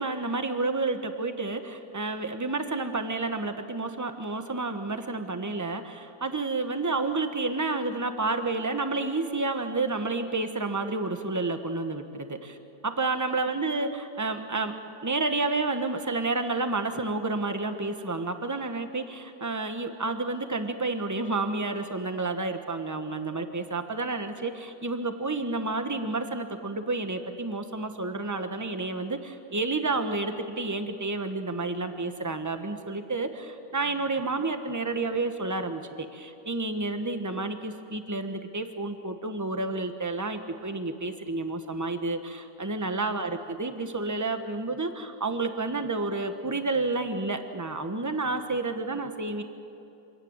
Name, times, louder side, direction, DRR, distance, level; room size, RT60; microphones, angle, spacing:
voice 1, 0.0-12.6 12.8-14.8 15.0-49.4, right 3 dB, 10° right, 7 dB, 0.9 m, -30 dB
25.5 x 17.0 x 9.0 m, 2.8 s
omnidirectional pair, 2.0 m